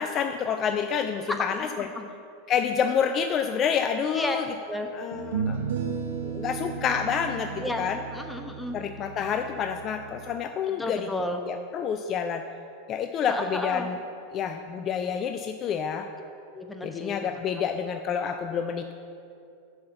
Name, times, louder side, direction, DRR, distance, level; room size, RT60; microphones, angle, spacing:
voice 1, 0.0-1.9 2.5-4.4 4.9-5.6 6.2-8.0 8.7-11.1 11.5-12.4 12.9-14.0 14.3-16.1 16.8-18.9, left 7 dB, 35° left, 7 dB, 0.4 m, -28 dB
voice 2, 1.3-2.1 4.1-4.4 4.7-4.9 7.6-8.8 10.7-11.4 13.3-13.9 16.5-17.2, left 1 dB, 5° left, 4 dB, 0.9 m, -33 dB
sound 1, 4.0-4.1 5.1-10.4, right 6 dB, 70° right, 0.9 m, -34 dB
7.7 x 5.8 x 6.7 m, 2.5 s
hypercardioid pair, 90°, 0 cm